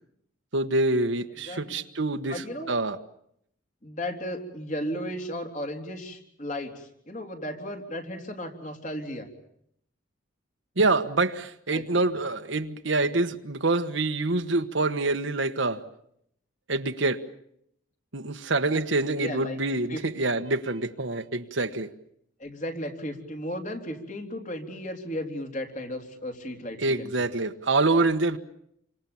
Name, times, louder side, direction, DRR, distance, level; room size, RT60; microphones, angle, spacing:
voice 1, 0.5-3.0 10.8-15.8 16.7-17.2 18.1-21.9 26.8-28.4, right 2 dB, 70° right, 1.4 m, -26 dB
voice 2, 2.3-2.8 3.8-9.3 11.7-12.0 19.2-19.6 19.9-20.0 22.4-27.3, equal, 40° left, 3.9 m, -35 dB
29.0 x 25.5 x 7.2 m
head